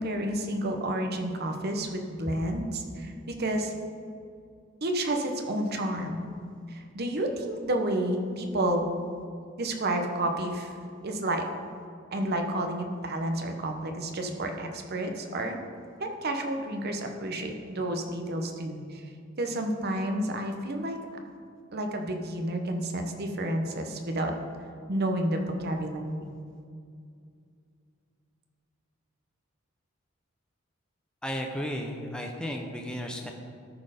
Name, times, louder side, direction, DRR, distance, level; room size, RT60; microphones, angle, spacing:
voice 1, 0.0-3.7 4.8-6.3 6.7-8.9 9.6-10.7 11.0-11.4 12.1-15.6 16.0-19.1 19.4-21.0 21.7-24.3 24.9-26.3, right 1 dB, 50° right, 4 dB, 0.9 m, -30 dB
voice 2, 31.2-33.3, equal, 5° left, 1 dB, 0.6 m, -34 dB
13.0 x 4.4 x 5.1 m, 2.3 s
head